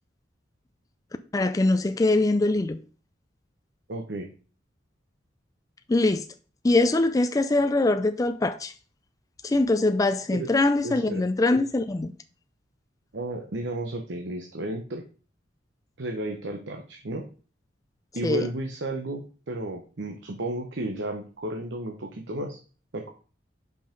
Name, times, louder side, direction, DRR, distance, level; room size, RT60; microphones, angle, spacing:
voice 1, 1.3-2.8 5.9-6.3 6.6-8.7 9.4-12.1 18.2-18.5, left 2 dB, 20° left, 0.3 m, -23 dB
voice 2, 3.9-4.3 10.3-10.5 10.8-11.2 13.1-15.0 16.0-17.3 18.1-22.6 22.9-23.1, right 1 dB, 70° right, 1.0 m, -33 dB
5.5 x 5.4 x 5.1 m
head